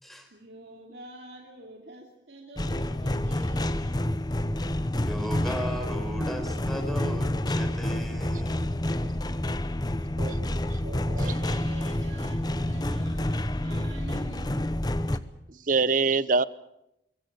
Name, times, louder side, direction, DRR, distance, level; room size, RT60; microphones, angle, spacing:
voice 1, 0.3-4.0 10.8-14.6, right 1 dB, 65° right, 1 dB, 3.0 m, -47 dB
sound 1, 2.6-15.2, left 1 dB, 20° left, 0.9 m, -28 dB
voice 2, 5.0-8.7, equal, ahead, 5 dB, 4.8 m, -36 dB
voice 3, 10.2-10.8 11.1-11.3 15.5-16.4, right 4 dB, 45° right, 18 dB, 0.9 m, -26 dB
24.5 x 23.5 x 6.8 m, 0.81 s
head